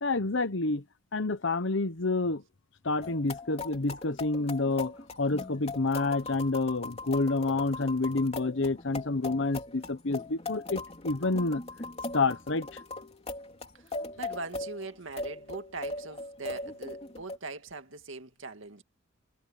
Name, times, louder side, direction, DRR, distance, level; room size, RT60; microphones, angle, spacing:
voice 1, 0.0-0.8 1.1-2.4 2.8-11.6 12.1-12.8, left 3 dB, 65° left, 1.1 m, -29 dB
sound 1, 3.0-17.4, left 2 dB, 30° left, 3.2 m, -40 dB
voice 2, 13.7-18.8, right 3 dB, 75° right, 2.2 m, -41 dB
head